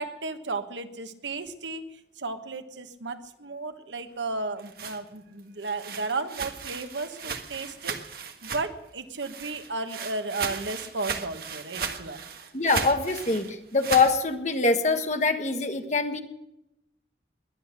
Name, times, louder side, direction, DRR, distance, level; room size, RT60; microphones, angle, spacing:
voice 1, 0.0-1.8 2.2-8.0 8.4-12.2, right 3 dB, 85° right, 8 dB, 1.3 m, -34 dB
sound 1, 4.4-8.9 9.2-14.2, right 5 dB, 55° right, 1.6 m, -36 dB
voice 2, 12.5-16.2, left 4 dB, 40° left, 6 dB, 1.4 m, -24 dB
21.5 x 9.9 x 6.6 m, 0.86 s
head